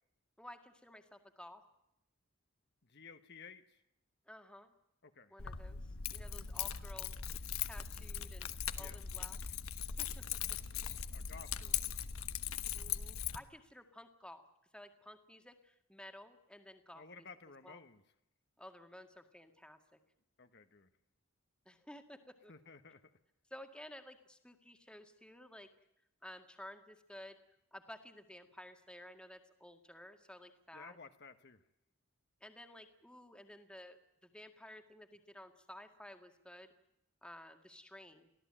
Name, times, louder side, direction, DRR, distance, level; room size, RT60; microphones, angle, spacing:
voice 1, 0.4-1.6 4.3-4.7 5.3-7.1 7.6-8.5 8.8-9.6 10.0-10.1 12.7-14.4 14.7-17.3 17.6-17.8 18.6-20.0 21.7-22.5 23.5-25.7 26.2-27.4 27.7-31.0 32.4-36.7 37.2-38.3, left 1 dB, 5° left, 6 dB, 1.9 m, -54 dB
voice 2, 2.8-3.8 5.0-5.3 8.7-9.0 11.1-11.9 16.9-18.0 20.4-20.9 22.5-23.0 30.7-31.6, left 5 dB, 50° left, 8 dB, 1.4 m, -55 dB
Keys jangling, 5.4-13.4, left 8 dB, 80° left, 1.2 m, -40 dB
24.0 x 16.5 x 8.9 m, 0.81 s
head